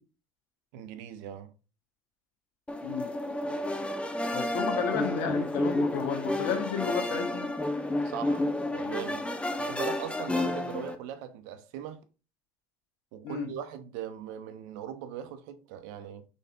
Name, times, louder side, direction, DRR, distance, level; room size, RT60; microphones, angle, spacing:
voice 1, 0.7-1.5 8.0-8.5 8.7-9.3 9.6-12.0 13.1-16.3, right 10 dB, 75° right, 0.7 m, -40 dB
sound 1, 2.7-11.0, left 1 dB, 10° left, 0.8 m, -31 dB
voice 2, 4.3-7.5 13.2-13.5, left 7 dB, 75° left, 1.1 m, -32 dB
5.2 x 4.0 x 2.4 m
hypercardioid pair, 65°, 10 cm